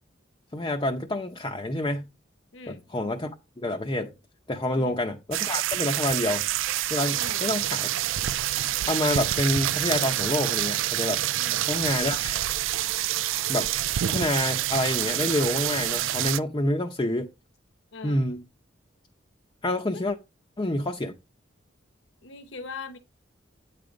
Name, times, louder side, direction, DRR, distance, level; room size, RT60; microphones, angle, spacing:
voice 1, 0.5-2.1 2.7-3.3 3.6-4.1 4.5-6.4 6.9-7.9 8.9-11.2 11.7-12.4 13.5-13.7 14.0-17.3 18.0-18.4 19.6-20.2 20.6-21.1, left 1 dB, 25° left, 0.6 m, -27 dB
sound 1, 5.3-16.4, right 13 dB, 80° right, 0.4 m, -27 dB
voice 2, 7.1-7.5 11.3-11.7 17.9-18.3 19.9-20.0 22.2-23.0, left 4 dB, 70° left, 0.9 m, -41 dB
9.0 x 5.1 x 3.9 m
head